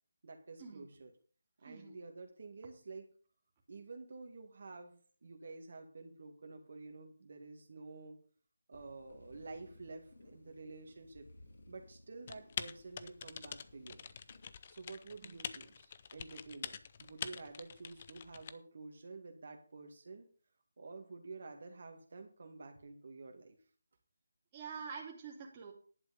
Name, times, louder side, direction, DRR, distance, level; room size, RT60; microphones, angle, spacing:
voice 1, 0.2-1.1 1.6-3.1 3.7-4.9 5.2-8.2 8.7-11.3 11.7-14.1 14.7-20.3 20.8-23.6, right 3 dB, 60° right, 4 dB, 2.0 m, -50 dB
voice 2, 1.6-2.0 15.2-15.4 24.5-25.7, right 6 dB, 25° right, -1 dB, 2.7 m, -46 dB
sound 1, 8.7-14.5, left 1 dB, 70° left, 3.4 m, -60 dB
Typing, 12.3-18.5, left 7 dB, 35° left, 0.7 m, -45 dB
11.0 x 8.2 x 5.1 m, 0.42 s
figure-of-eight pair, 165°, 0 cm